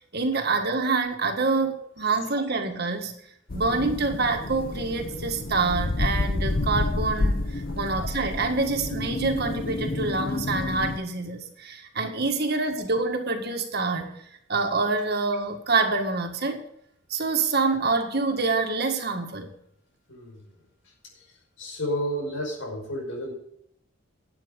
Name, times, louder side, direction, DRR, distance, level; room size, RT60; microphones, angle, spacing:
voice 1, 0.1-3.1 3.5-14.1 14.5-16.6 17.1-19.5, right 3 dB, 55° right, 5 dB, 1.8 m, -26 dB
sound 1, 3.5-11.0, left 2 dB, 45° left, 0.8 m, -29 dB
voice 2, 20.1-20.4 21.6-23.3, equal, 75° left, 1 dB, 5.5 m, -31 dB
12.0 x 9.0 x 5.2 m, 0.71 s
head